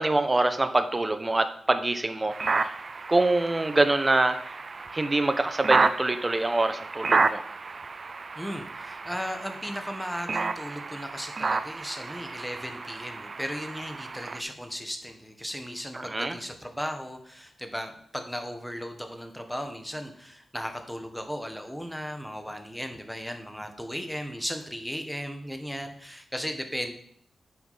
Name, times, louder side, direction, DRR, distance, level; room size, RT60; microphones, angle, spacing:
voice 1, 0.0-2.7 3.1-4.4 4.9-7.4 15.9-16.4, right 2 dB, 20° right, 9 dB, 1.0 m, -25 dB
sound 1, 2.3-14.4, right 4 dB, 45° right, 0.6 m, -31 dB
voice 2, 8.3-26.9, equal, ahead, 5 dB, 1.3 m, -36 dB
9.3 x 5.9 x 5.7 m, 0.63 s
wide cardioid pair, 95°, 0 cm